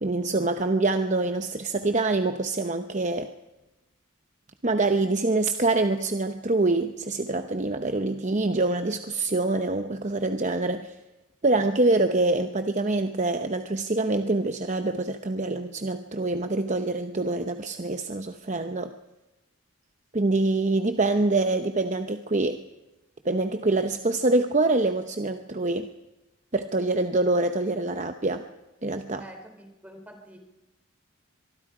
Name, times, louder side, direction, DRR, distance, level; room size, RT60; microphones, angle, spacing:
voice 1, 0.0-3.3 4.6-10.9 11.4-18.9 20.1-22.6 23.2-25.9 26.5-28.4 28.8-29.2, right 2 dB, 35° right, 8 dB, 0.8 m, -25 dB
voice 2, 29.2-30.4, right 1 dB, 5° right, 3 dB, 3.7 m, -46 dB
24.0 x 23.0 x 4.9 m, 1.0 s
head